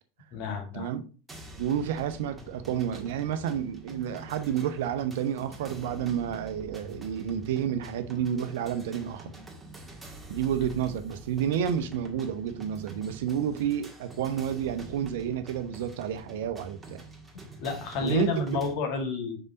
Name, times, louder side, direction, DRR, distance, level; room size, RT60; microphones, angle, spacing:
voice 1, 0.3-0.9 17.6-19.4, left 3 dB, 55° left, 1.8 m, -30 dB
sound 1, 1.3-18.7, right 1 dB, 10° right, 1.6 m, -46 dB
voice 2, 1.6-9.3 10.3-17.0 18.0-18.3, right 9 dB, 65° right, 0.7 m, -30 dB
5.4 x 4.9 x 3.9 m
hypercardioid pair, 85°, 0 cm